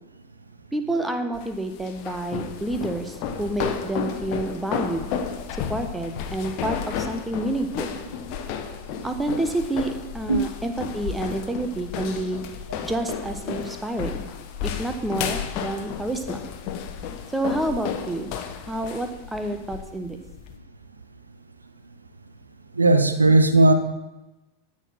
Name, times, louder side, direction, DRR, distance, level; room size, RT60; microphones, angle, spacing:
voice 1, 0.7-5.1 5.7-8.0 9.0-12.4 12.8-14.2 14.6-16.4 17.3-18.3 18.7-20.2, right 1 dB, 5° right, 6 dB, 1.0 m, -29 dB
sound 1, 1.3-20.6, left 8 dB, 40° left, 1.1 m, -33 dB
voice 2, 22.7-23.7, right 2 dB, 80° right, 8 dB, 0.9 m, -18 dB
13.0 x 4.6 x 6.0 m, 1.0 s
figure-of-eight pair, 90°, 0 cm